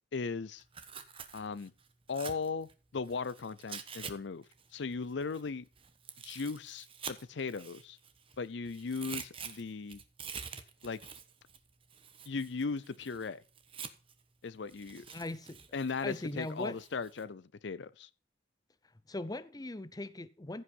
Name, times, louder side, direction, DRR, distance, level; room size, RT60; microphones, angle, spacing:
voice 1, 0.1-0.6 1.3-1.7 2.1-4.4 4.7-5.7 6.2-8.0 8.4-10.0 10.8-11.0 12.3-13.4 14.4-15.1 15.7-18.1, left 4 dB, 70° left, 0.5 m, -37 dB
Tearing, 0.6-4.1 4.4-8.4 8.7-14.2 14.7-17.2, right 6 dB, 30° right, 1.1 m, -47 dB
voice 2, 15.1-15.6 16.0-16.8 19.1-20.6, left 2 dB, 20° left, 0.6 m, -39 dB
15.5 x 5.6 x 5.4 m
head